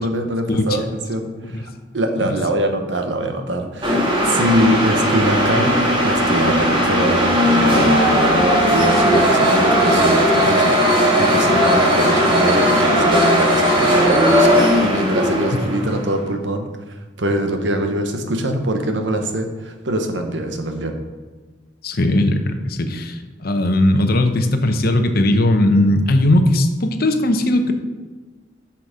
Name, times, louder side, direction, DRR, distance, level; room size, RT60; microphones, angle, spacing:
voice 1, 0.0-1.7 1.9-5.7 6.0-16.7 17.2-21.0, right 1 dB, 70° right, 5 dB, 1.1 m, -23 dB
sound 1, 3.8-16.1, equal, 30° right, 1.8 m, -16 dB
voice 2, 21.8-27.7, left 1 dB, 55° left, 7 dB, 0.8 m, -18 dB
8.2 x 5.9 x 5.0 m, 1.3 s
head